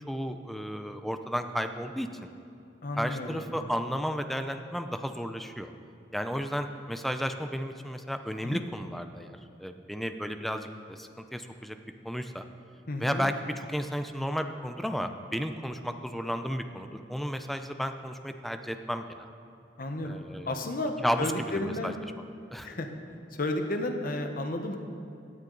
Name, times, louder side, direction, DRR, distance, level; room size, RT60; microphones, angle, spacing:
voice 1, 0.1-2.1 3.0-5.7 6.1-11.8 12.0-12.4 13.0-19.3 20.0-20.5 21.0-21.9 22.5-22.7, equal, ahead, 7 dB, 0.5 m, -33 dB
voice 2, 2.8-3.4 8.4-8.6 12.9-13.3 19.8-20.2 20.5-22.0 22.6-22.9 23.4-24.8, left 1 dB, 55° left, 5 dB, 1.1 m, -32 dB
17.0 x 9.6 x 3.9 m, 2.7 s
head